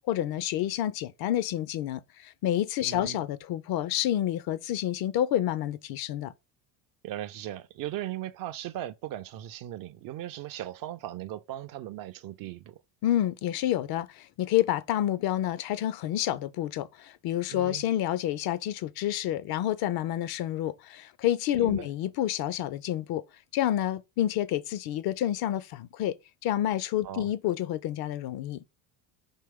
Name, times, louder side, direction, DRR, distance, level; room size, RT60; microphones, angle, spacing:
voice 1, 0.1-6.3 13.0-23.2 23.5-26.2 26.4-28.6, left 12 dB, 50° left, 0.5 m, -29 dB
voice 2, 2.8-3.2 7.0-12.8 17.5-17.9 21.6-21.9 27.0-27.3, right 13 dB, 45° right, 0.4 m, -38 dB
4.5 x 2.9 x 3.5 m
hypercardioid pair, 75°, 48 cm